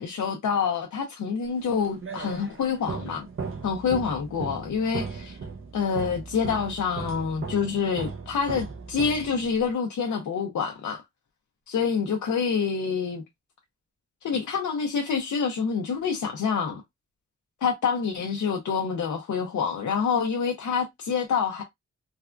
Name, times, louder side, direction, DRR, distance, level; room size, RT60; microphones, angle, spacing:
voice 1, 0.0-3.3 3.6-5.4 5.7-11.0 11.7-13.2 14.2-16.8 17.6-21.6, left 6 dB, 85° left, 0.6 m, -27 dB
sound 1, 1.6-9.7, right 5 dB, 45° right, 0.7 m, -37 dB
3.4 x 2.2 x 2.4 m
wide cardioid pair, 85°, 29 cm